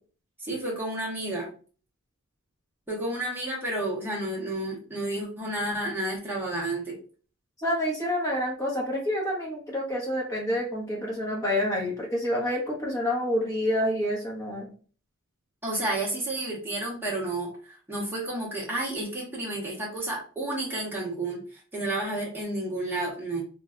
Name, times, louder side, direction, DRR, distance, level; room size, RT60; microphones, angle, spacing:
voice 1, 0.4-1.5 2.9-7.0 15.6-23.4, right 1 dB, 10° right, -4 dB, 1.0 m, -31 dB
voice 2, 7.6-14.7, left 1 dB, 15° left, -2 dB, 0.9 m, -28 dB
3.3 x 2.3 x 2.4 m, 0.40 s
head